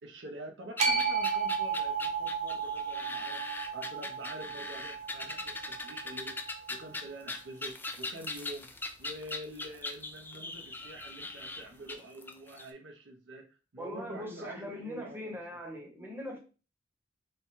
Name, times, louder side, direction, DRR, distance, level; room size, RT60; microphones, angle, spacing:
voice 1, 0.0-3.4 3.7-13.5 13.7-15.6, right 1 dB, 75° right, 0.7 m, -46 dB
sound 1, 0.8-12.7, left 2 dB, 10° left, 0.3 m, -40 dB
sound 2, 0.8-7.0, right 5 dB, 40° right, 0.7 m, -34 dB
voice 2, 13.8-16.4, left 1 dB, 10° right, 0.9 m, -41 dB
3.2 x 2.2 x 4.3 m
head